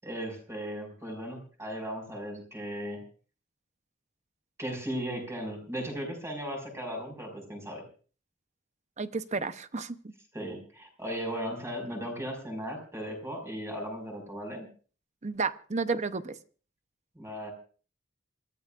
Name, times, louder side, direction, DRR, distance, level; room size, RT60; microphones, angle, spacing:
voice 1, 0.0-3.0 4.6-7.8 10.3-14.7 17.2-17.5, equal, 15° right, 3 dB, 5.4 m, -37 dB
voice 2, 9.0-10.1 15.2-16.3, right 4 dB, 35° right, 12 dB, 0.8 m, -32 dB
27.5 x 14.5 x 2.5 m, 0.39 s
head